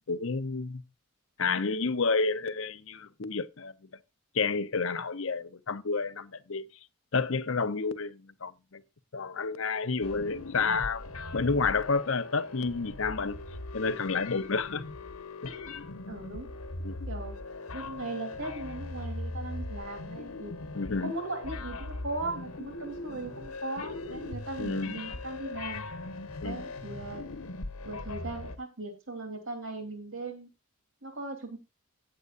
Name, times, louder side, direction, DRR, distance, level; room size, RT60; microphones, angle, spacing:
voice 1, 0.1-0.8 1.4-3.7 4.3-6.6 7.1-8.8 9.1-11.0 11.3-13.4 13.7-14.8 15.4-15.5 16.8-17.0 20.7-21.1 24.6-24.9 26.4-26.6, left 4 dB, 65° left, 0.8 m, -30 dB
sound 1, 10.0-28.6, left 2 dB, 85° left, 1.3 m, -40 dB
voice 2, 16.1-16.5 17.1-17.4 17.7-20.6 21.0-25.8 26.4-27.3 27.8-30.5 31.0-31.6, right 2 dB, 65° right, 3.3 m, -38 dB
16.5 x 7.9 x 2.6 m
head